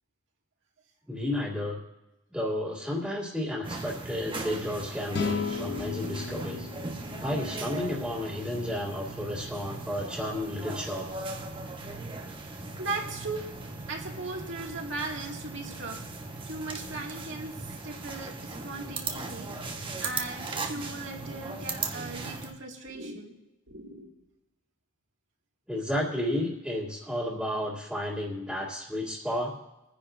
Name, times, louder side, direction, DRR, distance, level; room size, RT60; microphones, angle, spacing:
voice 1, 1.1-1.8 2.3-6.7 7.2-11.1 25.7-29.6, left 1 dB, ahead, -8 dB, 2.2 m, -32 dB
sound 1, 3.6-22.5, right 3 dB, 25° right, 1.0 m, -38 dB
sound 2, 5.1-8.4, left 5 dB, 60° left, 0.6 m, -35 dB
voice 2, 12.8-13.5 13.9-16.0 16.5-17.6 17.8-23.4 23.7-24.1, right 3 dB, 65° right, 0 dB, 2.1 m, -38 dB
30.0 x 10.0 x 2.6 m, 0.96 s
head